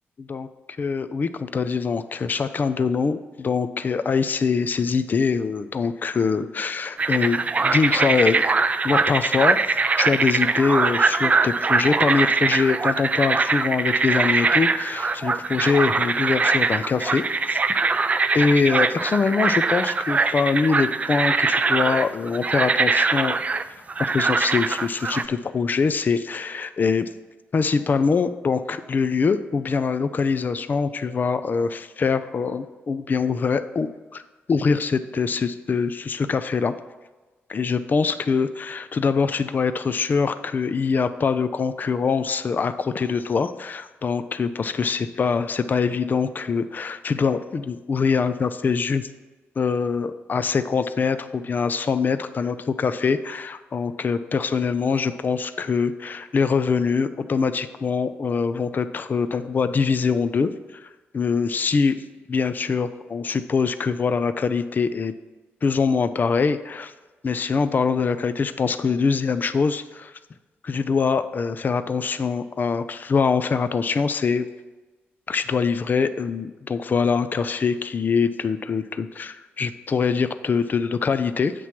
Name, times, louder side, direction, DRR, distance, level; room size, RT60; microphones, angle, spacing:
voice 1, 0.8-8.4 8.8-17.6 18.3-23.4 24.0-27.1 27.5-34.2 34.5-36.7 37.5-49.1 49.6-60.9 61.1-62.0 62.3-65.1 65.6-66.9 67.2-70.1 70.6-74.5 75.3-81.5, left 5 dB, 45° left, 12 dB, 0.4 m, -23 dB
sound 1, 7.0-25.2, right 4 dB, 30° right, 0.3 m, -22 dB
8.2 x 3.1 x 5.8 m, 1.2 s
cardioid pair, 75°, 5 cm